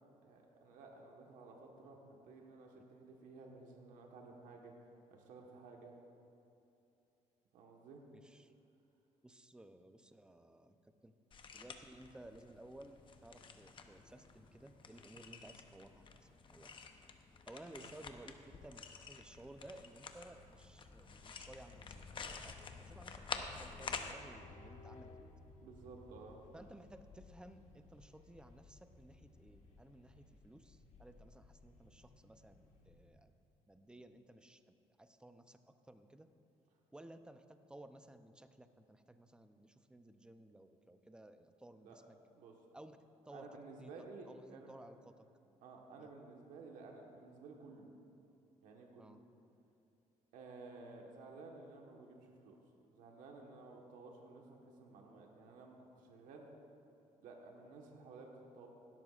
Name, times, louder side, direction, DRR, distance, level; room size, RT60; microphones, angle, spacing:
voice 1, 0.2-4.7 5.1-5.9 7.5-8.0 17.8-17.9 25.6-26.4 41.8-42.0 42.3-42.5 43.3-44.7 45.6-47.9 48.6-49.2 50.3-52.6 52.9-56.5 57.2-58.7, right 3 dB, 85° right, 0 dB, 1.4 m, -54 dB
voice 2, 8.1-8.5 9.2-11.2 11.5-16.8 17.5-18.3 18.6-25.3 26.5-33.3 33.7-36.3 36.9-42.2 42.7-43.0 43.3-43.5 43.8-45.3 46.0-46.1 49.0-49.2, right 1 dB, 5° right, 9 dB, 0.6 m, -57 dB
sound 1, 11.3-24.1, left 5 dB, 40° left, 0.8 m, -49 dB
sound 2, 19.1-26.2, equal, 90° left, 1.9 m, -67 dB
sound 3, 23.8-33.1, left 3 dB, 70° left, 1.7 m, -60 dB
17.0 x 12.5 x 2.5 m, 2.7 s
cardioid pair, 105°, 13 cm